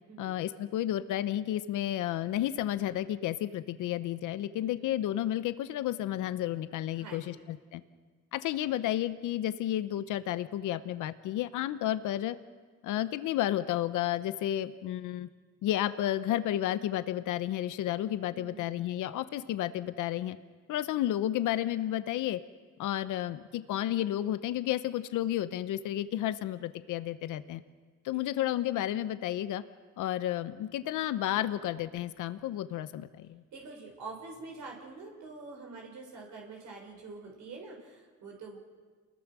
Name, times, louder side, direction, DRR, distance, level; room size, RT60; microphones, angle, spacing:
voice 1, 0.2-7.8 8.3-12.3 12.8-15.3 15.6-20.4 20.7-22.4 22.8-27.6 28.0-29.6 30.0-33.4, left 12 dB, 85° left, 12 dB, 0.9 m, -32 dB
voice 2, 6.9-7.4 18.3-18.7 33.5-38.6, right 3 dB, 75° right, 0 dB, 5.8 m, -46 dB
28.5 x 20.5 x 6.2 m, 1.5 s
cardioid pair, 90°, 30 cm